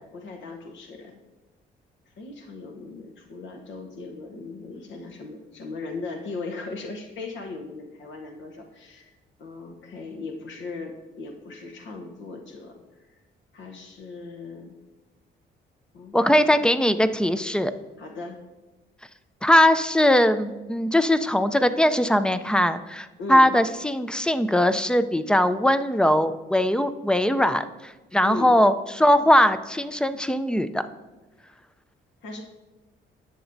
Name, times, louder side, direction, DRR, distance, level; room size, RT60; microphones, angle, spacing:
voice 1, 0.1-1.2 2.1-9.1 9.4-13.2 13.5-14.7 15.9-16.7 18.0-18.4 23.2-23.5 28.2-28.5 32.2-32.4, left 3 dB, 70° left, 3 dB, 0.9 m, -38 dB
voice 2, 16.1-17.7 19.4-30.8, left 1 dB, 5° left, 11 dB, 0.4 m, -20 dB
11.0 x 7.0 x 2.6 m, 1.2 s
cardioid pair, 90°, 20 cm